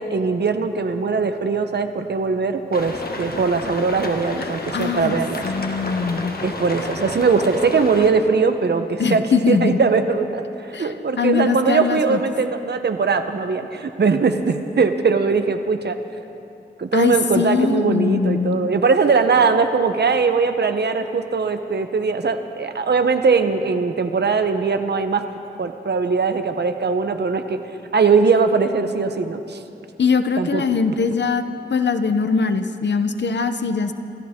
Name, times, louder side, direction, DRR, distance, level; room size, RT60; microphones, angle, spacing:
voice 1, 0.0-5.4 6.4-16.0 16.8-25.3 25.6-27.6 27.9-29.6 30.4-30.6, right 4 dB, 65° right, 8 dB, 0.9 m, -20 dB
sound 1, 2.7-8.1, left 2 dB, 55° left, 1.6 m, -31 dB
voice 2, 4.4-5.2 5.4-6.4 9.0-9.8 10.7-12.2 16.9-18.7 30.0-31.4 31.7-33.9, left 5 dB, 75° left, 9 dB, 0.8 m, -21 dB
26.5 x 14.0 x 3.7 m, 2.8 s
wide cardioid pair, 75°, 19 cm